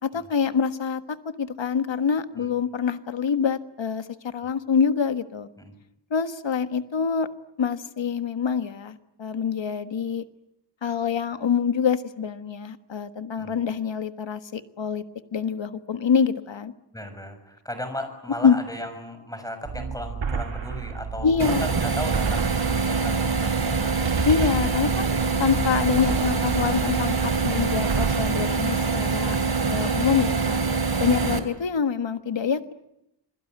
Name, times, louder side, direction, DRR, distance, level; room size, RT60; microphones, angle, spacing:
voice 1, 0.0-5.5 6.1-7.3 7.6-10.2 10.8-15.0 15.3-16.7 18.4-18.6 21.2-21.6 24.2-29.4 29.7-30.6 31.0-32.7, left 6 dB, 75° left, 10 dB, 1.5 m, -25 dB
voice 2, 16.9-24.0, left 1 dB, 10° left, 8 dB, 6.6 m, -36 dB
sound 1, 19.6-28.3, right 5 dB, 80° right, 2.7 m, -31 dB
sound 2, 21.4-31.4, right 4 dB, 55° right, 3.3 m, -25 dB
27.5 x 22.0 x 9.4 m, 0.83 s
wide cardioid pair, 100°, 45 cm